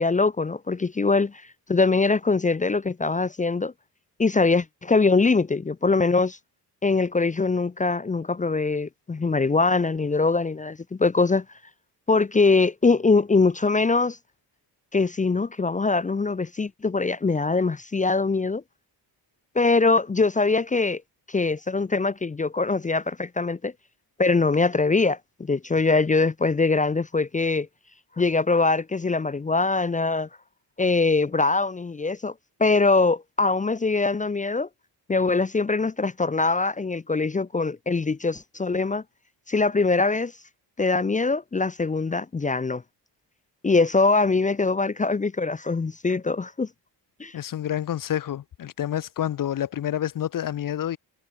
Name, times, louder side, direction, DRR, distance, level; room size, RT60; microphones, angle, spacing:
voice 1, 0.0-1.3 1.7-3.7 4.2-6.4 6.8-11.4 12.1-14.2 14.9-18.6 19.5-21.0 21.3-23.7 24.2-27.7 28.2-30.3 30.8-32.3 32.6-34.7 35.1-39.0 39.5-40.3 40.8-42.8 43.6-46.7 47.2-47.4, left 3 dB, 20° left, 0.8 m, -22 dB
voice 2, 47.3-51.0, left 11 dB, 50° left, 1.0 m, -28 dB
wide cardioid pair, 155°, 42 cm